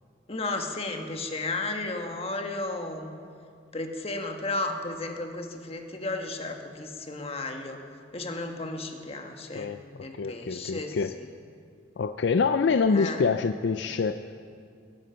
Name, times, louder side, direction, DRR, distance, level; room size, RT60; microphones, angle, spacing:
voice 1, 0.3-3.1 3.7-7.8 8.1-9.7 10.0-11.2 12.9-13.2, left 2 dB, 30° left, 4 dB, 1.4 m, -33 dB
voice 2, 10.2-11.1 12.0-14.4, left 5 dB, 65° left, 10 dB, 0.4 m, -26 dB
19.5 x 13.0 x 5.7 m, 2.3 s
head